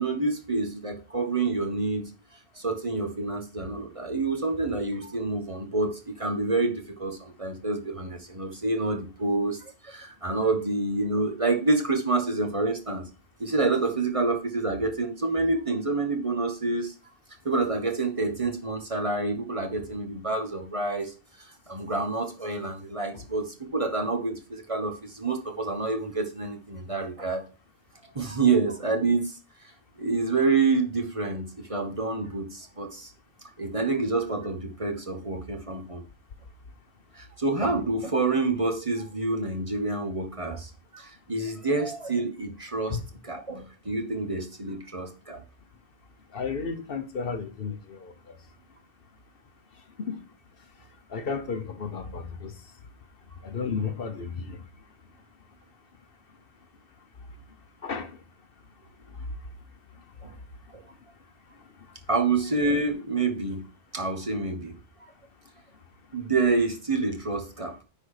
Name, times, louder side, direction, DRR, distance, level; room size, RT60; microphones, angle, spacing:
voice 1, 0.0-2.1 2.5-13.0 13.4-16.9 17.4-27.4 28.1-29.7 30.0-33.1 33.6-36.0 37.1-43.0 43.2-45.4 60.2-60.3 62.1-63.7 63.9-64.8 66.1-67.8, right 3 dB, 30° right, 1.2 m, -28 dB
voice 2, 46.3-48.1 50.1-50.2 51.1-52.5 53.4-54.6 57.8-58.1, left 5 dB, 60° left, 1.1 m, -32 dB
10.0 x 4.0 x 4.8 m
omnidirectional pair, 1.1 m